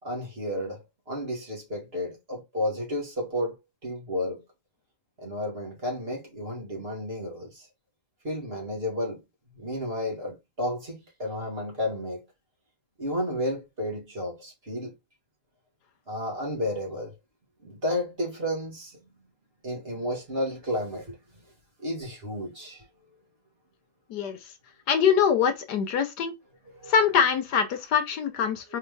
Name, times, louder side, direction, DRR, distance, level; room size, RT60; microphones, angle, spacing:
voice 1, 0.0-3.5 3.8-4.4 5.2-7.7 8.2-9.2 9.5-12.2 13.0-14.9 16.1-17.1 17.6-19.0 19.6-21.2 21.8-22.8 26.7-26.9 28.7-28.8, left 1 dB, 35° right, 2.3 m, -32 dB
voice 2, 24.9-26.3 26.9-28.8, left 7 dB, 80° left, 1.4 m, -23 dB
4.5 x 3.6 x 3.2 m
omnidirectional pair, 1.8 m